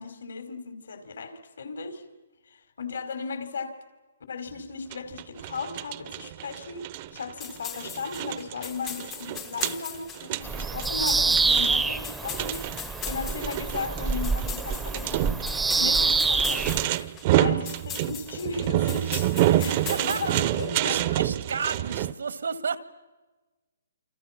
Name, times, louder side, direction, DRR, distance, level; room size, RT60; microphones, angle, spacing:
voice 1, 0.0-2.0 2.5-3.7 4.3-15.3 15.5-21.1, left 4 dB, 75° left, 8 dB, 4.9 m, -36 dB
sound 1, 4.9-22.1, right 14 dB, 35° right, 0.9 m, -29 dB
sound 2, 7.4-20.9, left 11 dB, 20° left, 0.9 m, -40 dB
Bird vocalization bird call bird song, 10.4-16.8, right 4 dB, 5° right, 0.9 m, -26 dB
voice 2, 19.4-20.5 20.8-22.8, right 5 dB, 80° right, 11 dB, 2.2 m, -32 dB
28.5 x 27.0 x 6.1 m, 1.2 s
hypercardioid pair, 155°, 0 cm